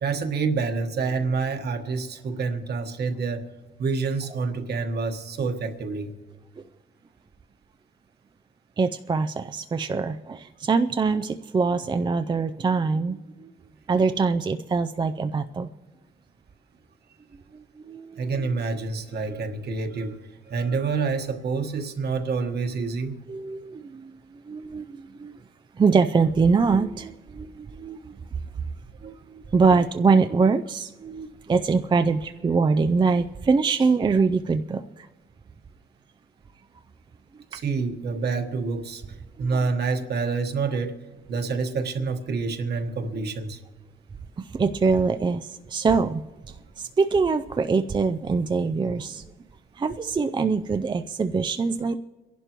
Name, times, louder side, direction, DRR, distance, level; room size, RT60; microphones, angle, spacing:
voice 1, 0.0-3.5 3.8-6.1 18.2-23.2 29.0-29.1 37.5-40.9 41.3-43.6, right 4 dB, 55° right, 6 dB, 1.4 m, -27 dB
voice 2, 8.8-13.5 13.9-15.7 17.5-18.5 23.3-24.1 24.5-25.3 25.8-28.1 29.0-35.1 39.4-39.6 44.4-46.2 46.8-49.2 49.8-52.0, right 4 dB, 25° right, 9 dB, 0.4 m, -24 dB
25.5 x 11.5 x 3.0 m, 1.2 s
cardioid pair, 90°, 20 cm